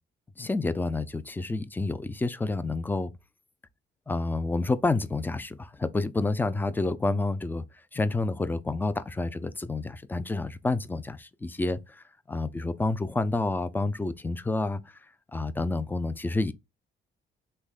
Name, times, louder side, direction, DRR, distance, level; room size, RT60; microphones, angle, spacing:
voice 1, 0.4-3.1 4.1-7.6 7.9-14.8 15.3-16.5, left 2 dB, 10° left, 0.3 m, -29 dB
3.4 x 3.2 x 2.2 m
cardioid pair, 90°, 20 cm